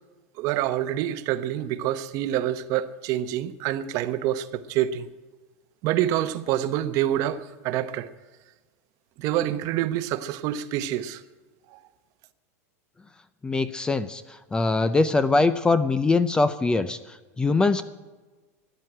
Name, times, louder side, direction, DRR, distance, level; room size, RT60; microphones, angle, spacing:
voice 1, 0.4-5.1 5.8-8.1 9.2-11.2 11.7-11.8, right 12 dB, 45° right, 0.9 m, -27 dB
voice 2, 13.4-14.2 14.5-17.0 17.4-17.8, left 3 dB, 10° left, 0.5 m, -22 dB
14.0 x 9.5 x 8.8 m
supercardioid pair, 150°, 8 cm